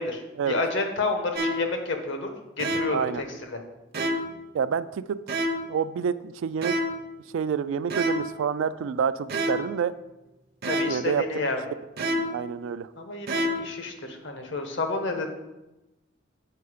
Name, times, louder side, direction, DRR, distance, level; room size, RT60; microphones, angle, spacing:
voice 1, 0.0-3.6 10.7-11.6 13.0-15.3, left 3 dB, 65° left, 5 dB, 1.0 m, -30 dB
sound 1, 1.4-1.8 2.6-3.1 3.9-4.4 5.3-5.8 6.6-7.1 7.9-8.4 9.3-9.8 10.6-11.1 12.0-12.5 13.3-13.8, equal, 55° right, 0.7 m, -28 dB
voice 2, 2.9-3.2 4.5-5.2 5.7-6.8 7.3-9.9 10.8-11.2 12.1-12.9, right 7 dB, 75° right, 14 dB, 0.3 m, -28 dB
6.7 x 4.6 x 4.9 m, 1.0 s
head